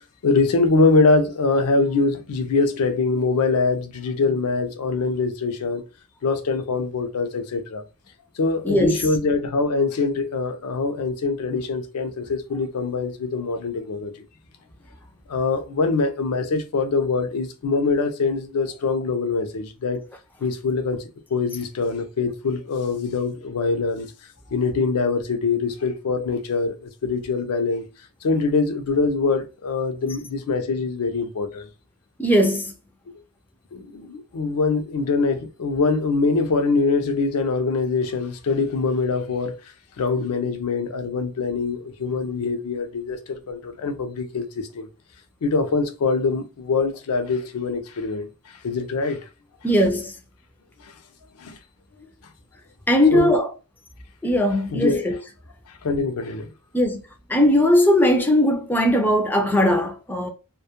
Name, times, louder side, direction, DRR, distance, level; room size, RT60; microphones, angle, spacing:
voice 1, 0.2-5.8 6.2-7.8 8.4-14.1 15.3-20.0 20.4-21.0 21.3-24.1 24.5-27.8 28.2-31.7 33.7-39.6 40.0-44.9 45.4-48.3 48.6-49.2 51.4-51.6 53.1-53.3 54.7-55.1 55.8-56.5, left 4 dB, 80° left, 0.4 m, -23 dB
voice 2, 8.6-9.0 32.2-32.7 49.6-50.1 52.9-53.5 54.2-55.2 56.7-57.0 57.3-60.3, left 1 dB, 10° left, 0.3 m, -19 dB
2.2 x 2.1 x 2.8 m
head